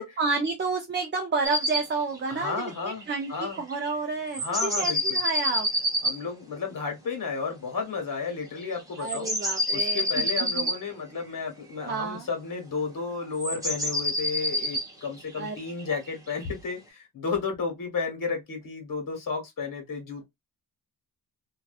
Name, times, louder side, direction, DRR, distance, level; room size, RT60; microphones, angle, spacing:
voice 1, 0.2-5.7 9.0-10.2 10.5-10.7 11.9-12.3 15.4-15.6, right 4 dB, 30° right, 0.5 m, -30 dB
sound 1, 1.4-1.9 2.1-2.2 2.5-2.6 2.8-3.9 4.3-6.2 8.8-10.8 13.4-16.4, equal, 10° right, 1.1 m, -28 dB
voice 2, 2.3-3.6 4.4-5.2 6.0-9.4 9.7-20.2, left 5 dB, 55° left, 1.3 m, -32 dB
2.6 x 2.3 x 2.3 m
cardioid pair, 95°, 40 cm